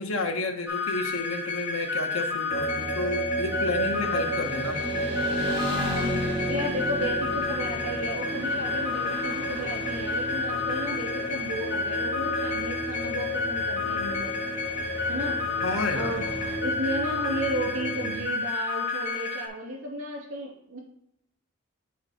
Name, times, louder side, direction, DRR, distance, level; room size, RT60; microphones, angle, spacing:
voice 1, 0.0-4.8 15.6-16.2, left 3 dB, 80° left, 4 dB, 1.1 m, -31 dB
sound 1, 0.7-19.5, left 4 dB, 55° left, 2.3 m, -31 dB
sound 2, 2.5-18.2, right 1 dB, 30° left, 1.5 m, -34 dB
Motorcycle / Traffic noise roadway noise, 3.5-16.6, equal, 25° right, 1.6 m, -37 dB
voice 2, 5.7-14.3 15.1-15.6 15.9-16.2 16.6-20.8, right 1 dB, 70° right, -1 dB, 2.6 m, -34 dB
7.8 x 4.8 x 4.3 m, 0.76 s
head